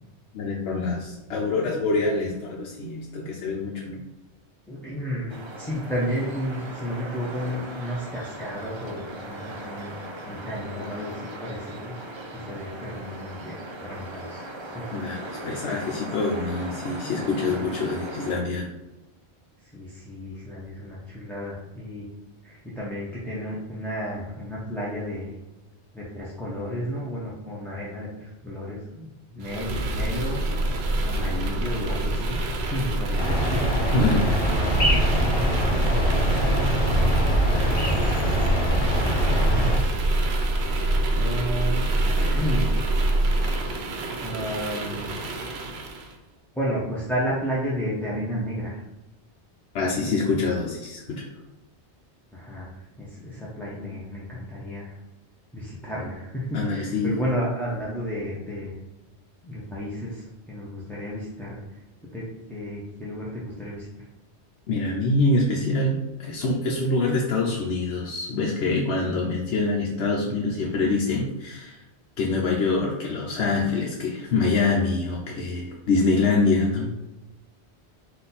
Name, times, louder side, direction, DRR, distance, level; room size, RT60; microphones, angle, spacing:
voice 1, 0.3-4.0 14.9-18.7 33.9-34.3 49.7-51.3 56.5-57.2 64.7-71.8 72.2-76.9, left 3 dB, 80° left, -3 dB, 1.0 m, -25 dB
voice 2, 4.7-9.9 10.2-14.4 14.7-14.8 15.5-15.6 17.0-17.2 17.5-17.7 19.6-22.1 22.4-25.4 25.9-30.4 31.0-33.6 34.6-34.8 35.1-36.9 37.5-38.3 38.9-40.3 41.1-42.8 44.2-45.1 46.5-48.8 49.9-50.3 52.3-55.0 55.5-58.8 59.4-61.6 62.1-64.1, equal, ahead, -8 dB, 0.7 m, -33 dB
sound 1, 5.3-18.4, right 1 dB, 40° right, 0.4 m, -38 dB
sound 2, 29.4-46.1, right 1 dB, 70° right, 0.9 m, -26 dB
sound 3, 33.2-39.8, equal, 60° left, 1.7 m, -23 dB
4.2 x 2.7 x 4.0 m, 0.98 s
omnidirectional pair, 1.1 m